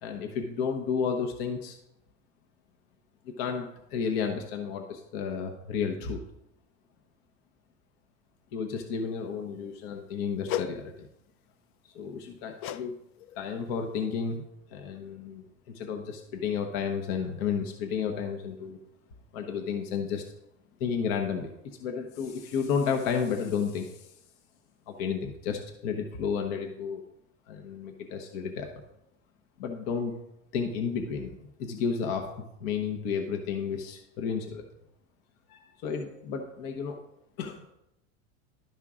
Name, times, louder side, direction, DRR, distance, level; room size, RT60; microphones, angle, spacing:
voice 1, 0.0-1.8 3.4-6.2 8.5-11.1 11.9-13.0 13.4-14.4 14.7-18.8 19.3-20.2 20.8-24.1 24.9-27.0 27.5-28.7 29.6-30.1 30.5-31.3 31.6-32.3 32.6-34.6 35.5-37.0 37.4-37.7, left 6 dB, 60° left, 3 dB, 1.1 m, -32 dB
sound 1, 10.5-10.8 12.6-12.9 13.2-13.5 14.0-14.1, left 11 dB, 45° left, 0.4 m, -34 dB
12.0 x 5.6 x 3.7 m, 0.82 s
supercardioid pair, 150°, 33 cm